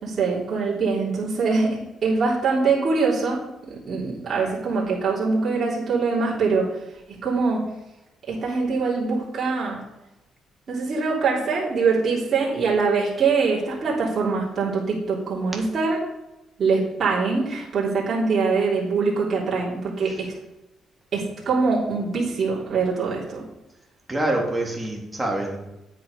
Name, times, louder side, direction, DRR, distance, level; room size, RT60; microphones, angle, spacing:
voice 1, 0.0-3.4 3.7-6.7 7.2-7.6 8.3-9.8 10.7-16.0 16.6-20.3 21.1-23.4, right 4 dB, 50° right, -6 dB, 3.4 m, -23 dB
voice 2, 24.1-25.6, right 1 dB, 15° right, -1 dB, 3.3 m, -25 dB
9.4 x 8.5 x 5.3 m, 0.96 s
cardioid pair, 90°, 0 cm